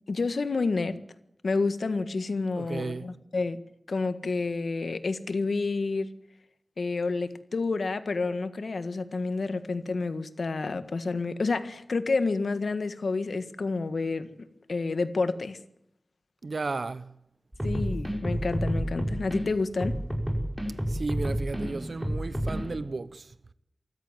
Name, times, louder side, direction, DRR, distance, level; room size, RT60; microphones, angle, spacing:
voice 1, 0.1-0.9 1.4-3.6 3.9-6.1 6.8-14.3 14.7-15.6 17.6-19.9, left 3 dB, 80° left, 1.6 m, -29 dB
voice 2, 2.5-3.1 16.4-17.1 20.9-23.3, right 3 dB, 70° right, 0.8 m, -34 dB
sound 1, 17.5-19.4 19.8-22.7, equal, 10° right, 5.7 m, -30 dB
24.0 x 14.0 x 9.1 m
wide cardioid pair, 55°, 0 cm